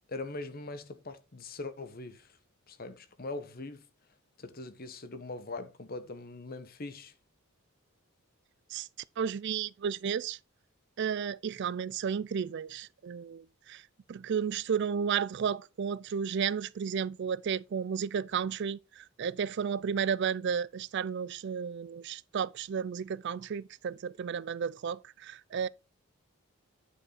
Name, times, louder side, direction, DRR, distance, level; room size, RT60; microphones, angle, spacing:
voice 1, 0.1-2.4 2.7-3.9 4.4-7.1, left 2 dB, 40° left, 1.0 m, -41 dB
voice 2, 9.2-10.4 11.0-13.8 14.1-25.7, right 7 dB, 50° right, 0.3 m, -33 dB
9.7 x 5.4 x 4.0 m
head